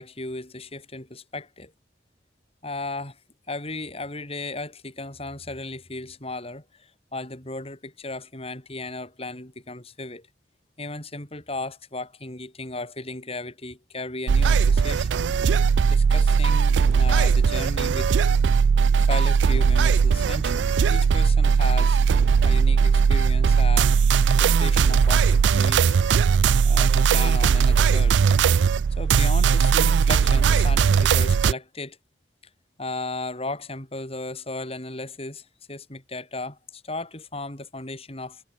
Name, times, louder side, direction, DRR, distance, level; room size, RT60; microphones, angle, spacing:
voice 1, 0.0-1.7 2.6-3.2 3.5-10.3 10.8-15.2 15.9-18.2 19.0-22.0 22.4-24.0 24.3-26.0 26.6-28.2 29.0-32.0 32.8-38.4, left 2 dB, 35° left, 7.2 m, -35 dB
sound 1, 14.3-31.5, right 6 dB, 85° right, 0.4 m, -19 dB
head